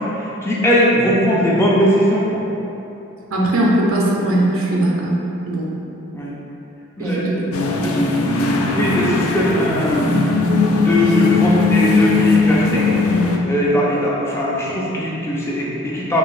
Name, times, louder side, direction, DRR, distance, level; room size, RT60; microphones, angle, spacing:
voice 1, 0.0-2.4 6.1-6.3 7.0-7.3 7.8-10.4 10.8-12.9 13.4-16.2, equal, 10° left, -5 dB, 0.4 m, -20 dB
voice 2, 3.3-5.1 5.5-5.7 7.0-7.4 7.9-8.0, right 1 dB, 80° right, -3 dB, 0.7 m, -19 dB
sound 1, 7.5-13.4, left 3 dB, 80° left, 0.4 m, -18 dB
4.7 x 2.8 x 2.5 m, 2.9 s
head